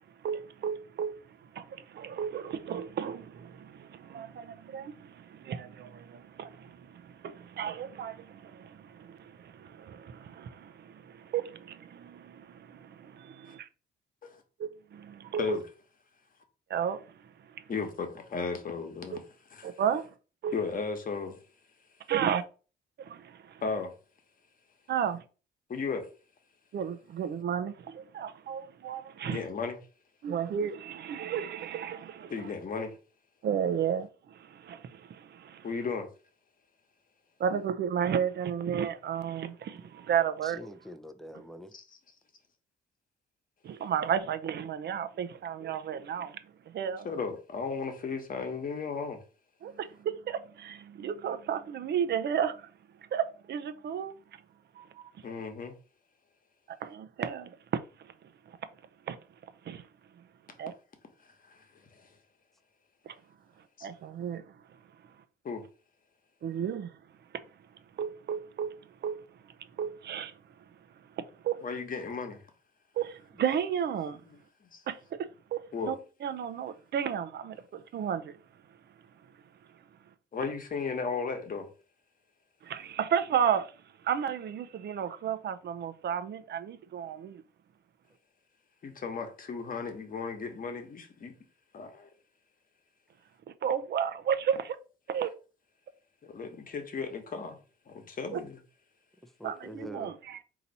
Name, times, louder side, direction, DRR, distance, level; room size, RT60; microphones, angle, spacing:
voice 1, 0.2-13.7 14.6-15.6 16.7-17.6 19.1-19.2 19.6-20.1 20.4-20.5 22.1-22.4 23.0-23.6 24.9-25.2 26.7-29.5 30.2-32.5 33.4-35.7 37.4-40.6 43.6-46.4 46.7-47.1 49.6-52.7 53.1-54.4 54.7-55.1 56.8-58.1 58.5-58.6 59.1-59.2 59.6-59.8 60.2-60.3 60.6-60.7 63.1-63.2 63.8-64.8 66.4-66.9 67.3-67.4 68.0-68.7 69.0-69.2 69.4-70.3 71.0-71.6 73.0-74.2 74.9-76.0 76.2-78.4 82.6-83.7 84.0-87.4 93.6-94.8 95.1-95.3 98.3-98.4 99.4-100.4, right 8 dB, 60° right, 0.6 m, -33 dB
voice 2, 17.7-19.2 19.5-19.7 20.5-21.4 23.6-23.9 25.7-26.1 29.2-29.8 32.3-33.0 35.6-36.1 41.7-42.0 47.0-49.2 55.2-55.7 61.2-62.1 63.8-63.9 65.4-65.6 71.6-72.4 74.3-74.4 74.7-74.8 75.7-75.9 80.3-81.7 88.8-91.3 91.7-92.1 96.2-97.6 97.9-98.6, left 5 dB, 45° left, 1.1 m, -35 dB
voice 3, 40.4-41.7 99.4-100.2, equal, ahead, 0.5 m, -44 dB
4.0 x 2.9 x 4.1 m
cardioid pair, 90°, 20 cm